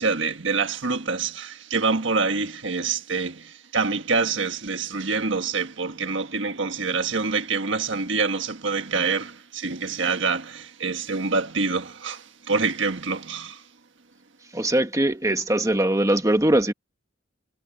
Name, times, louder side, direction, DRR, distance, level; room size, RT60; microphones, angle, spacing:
voice 1, 0.0-13.6, right 4 dB, 70° right, 1.5 m, -26 dB
voice 2, 14.5-16.7, right 1 dB, 15° right, 1.4 m, -21 dB
head